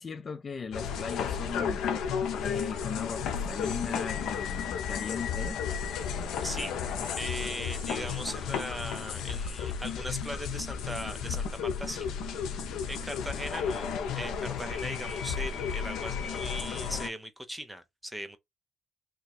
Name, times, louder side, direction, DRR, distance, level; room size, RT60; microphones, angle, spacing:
voice 1, 0.0-1.9 2.3-5.6, left 5 dB, 40° left, 0.5 m, -38 dB
sound 1, 0.7-17.1, left 7 dB, 85° left, 0.6 m, -33 dB
voice 2, 6.4-6.7 7.2-12.1 12.5-18.4, equal, 5° right, 0.8 m, -39 dB
3.1 x 2.3 x 4.1 m
cardioid pair, 90°, 0 cm